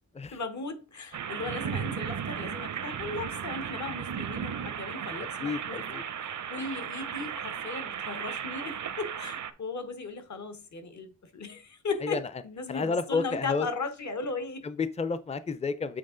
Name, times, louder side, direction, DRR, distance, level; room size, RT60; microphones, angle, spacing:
voice 1, 0.3-5.9 6.2-14.6, left 4 dB, 65° left, 1.1 m, -37 dB
sound 1, 1.1-9.5, right 8 dB, 75° right, 0.6 m, -35 dB
voice 2, 5.4-6.0 12.0-12.2 12.7-13.7 14.6-16.0, left 4 dB, 20° left, 0.4 m, -30 dB
7.6 x 3.6 x 3.8 m
wide cardioid pair, 120°, 30 cm